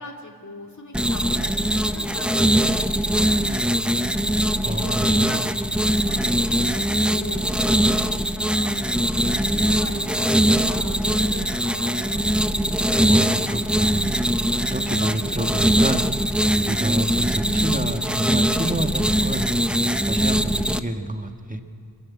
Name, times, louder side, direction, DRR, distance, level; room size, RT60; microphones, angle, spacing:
voice 1, 0.0-3.9 4.6-5.4 5.8-8.8 9.1-12.3, left 2 dB, 50° left, 0 dB, 2.5 m, -40 dB
sound 1, 0.9-20.8, equal, 5° right, 0.7 m, -21 dB
voice 2, 4.6-5.4 13.1-14.1 14.7-16.0 16.5-19.4 20.1-21.6, right 1 dB, 20° right, 5 dB, 1.6 m, -28 dB
26.0 x 15.0 x 8.5 m, 2.7 s
wide cardioid pair, 80°, 38 cm